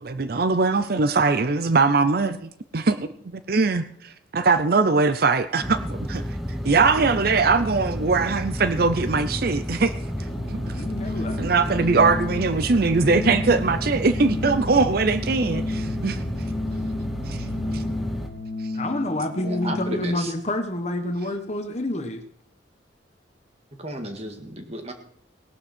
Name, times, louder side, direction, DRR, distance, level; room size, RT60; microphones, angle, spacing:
voice 1, 0.0-3.1 3.5-3.8 4.3-6.2 6.6-9.9 10.7-10.8 11.4-16.2 17.3-17.4 17.7-17.8, right 4 dB, 55° right, 12 dB, 0.6 m, -21 dB
sound 1, 5.6-18.3, equal, ahead, 1.2 m, -31 dB
Organ, 9.8-20.1, left 2 dB, 55° left, 1.3 m, -33 dB
voice 2, 10.8-11.5 18.7-22.2, left 1 dB, 35° left, 8 dB, 1.3 m, -28 dB
voice 3, 19.4-20.3 23.8-24.9, right 1 dB, 35° right, 5 dB, 2.0 m, -33 dB
18.0 x 12.0 x 4.4 m, 0.68 s
head